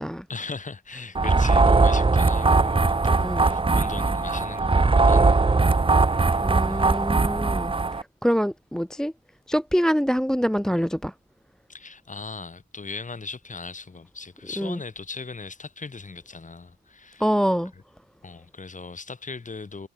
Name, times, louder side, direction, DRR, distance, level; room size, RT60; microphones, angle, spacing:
voice 1, 0.3-5.8 6.1-7.1 11.7-17.3 18.2-19.9, left 4 dB, 25° left, 2.7 m, -39 dB
sound 1, 1.1-8.0, right 3 dB, 15° right, 1.1 m, -20 dB
voice 2, 3.2-3.5 6.4-9.1 9.5-11.1 14.6-14.8 17.2-17.7, equal, ahead, 0.8 m, -25 dB
cardioid pair, 90°, 30 cm